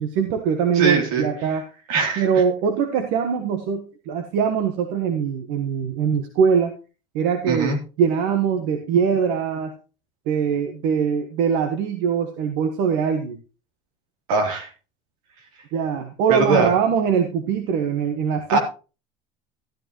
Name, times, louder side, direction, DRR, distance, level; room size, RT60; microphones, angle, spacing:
voice 1, 0.0-1.6 2.2-6.7 7.1-7.7 8.0-9.7 10.3-13.4 15.7-18.6, right 7 dB, 70° right, 7 dB, 1.4 m, -22 dB
voice 2, 0.7-1.6 1.9-2.3 7.5-7.8 14.3-14.7 16.3-16.7 18.5-18.6, right 4 dB, 85° right, 2 dB, 3.3 m, -21 dB
13.5 x 10.0 x 3.1 m, 0.33 s
supercardioid pair, 120°, 18 cm